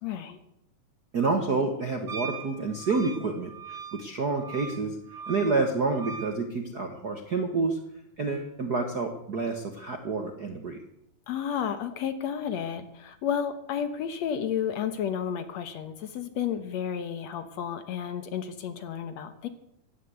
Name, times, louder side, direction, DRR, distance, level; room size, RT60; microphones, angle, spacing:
voice 1, 0.0-0.4 11.3-19.5, left 8 dB, 65° left, 11 dB, 2.0 m, -32 dB
voice 2, 1.1-5.0 5.3-7.8 8.2-10.8, right 3 dB, 50° right, 5 dB, 1.2 m, -28 dB
Wind instrument woodwind instrument, 2.1-6.4, right 6 dB, 35° right, 1.8 m, -40 dB
16.0 x 11.5 x 7.8 m, 0.77 s
omnidirectional pair, 3.7 m